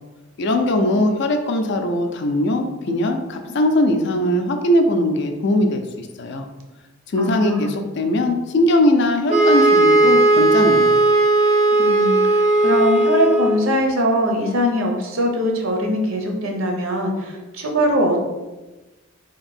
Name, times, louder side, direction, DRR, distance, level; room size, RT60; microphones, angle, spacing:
voice 1, 0.4-6.5 7.1-10.9, left 1 dB, 50° left, 5 dB, 0.4 m, -20 dB
voice 2, 7.2-7.8 11.8-18.2, equal, 65° right, 1 dB, 0.7 m, -21 dB
sound 1, 9.3-13.7, right 2 dB, 30° right, 0.4 m, -16 dB
2.9 x 2.6 x 4.1 m, 1.1 s
head